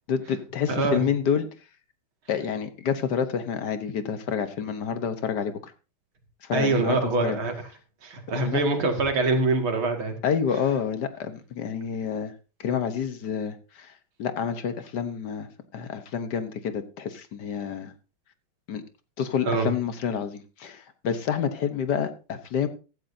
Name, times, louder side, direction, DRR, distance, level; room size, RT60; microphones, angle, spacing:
voice 1, 0.1-1.5 2.3-5.7 6.4-7.4 8.4-8.6 10.2-12.3 12.6-13.9 14.2-17.9 18.7-18.8 19.2-22.7, left 7 dB, 60° left, 10 dB, 1.5 m, -28 dB
voice 2, 6.5-7.5 8.0-10.1 19.5-19.7, right 3 dB, 90° right, 4 dB, 3.0 m, -24 dB
15.5 x 13.0 x 2.7 m, 0.32 s
omnidirectional pair, 2.2 m